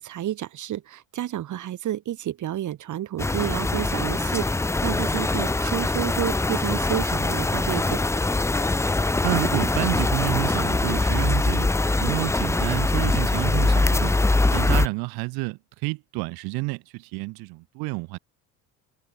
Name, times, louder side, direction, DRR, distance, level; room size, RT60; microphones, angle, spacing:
voice 1, 0.1-8.0, right 12 dB, 50° right, 1.9 m, -30 dB
sound 1, 3.2-14.9, left 2 dB, 5° left, 0.6 m, -23 dB
voice 2, 9.2-11.7 12.0-14.1 14.5-18.2, right 25 dB, 75° right, 1.8 m, -29 dB
supercardioid pair, 85°, 37 cm